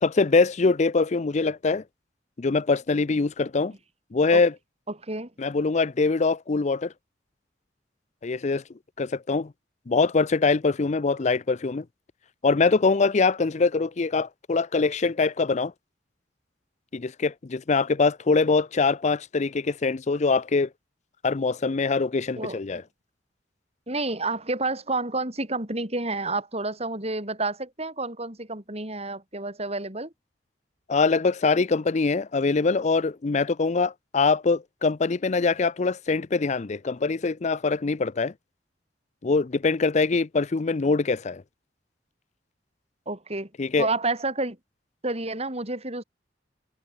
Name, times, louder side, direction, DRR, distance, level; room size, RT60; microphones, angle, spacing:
voice 1, 0.0-1.8 2.4-3.7 4.1-4.5 5.4-6.9 8.2-8.6 9.0-9.5 9.9-11.8 12.4-15.7 16.9-20.7 21.2-22.8 30.9-38.3 39.2-41.4 43.6-43.9, left 4 dB, 40° left, 0.5 m, -23 dB
voice 2, 23.9-30.1 43.1-43.5 43.8-44.6 45.0-46.0, right 2 dB, 35° right, 7.5 m, -29 dB
head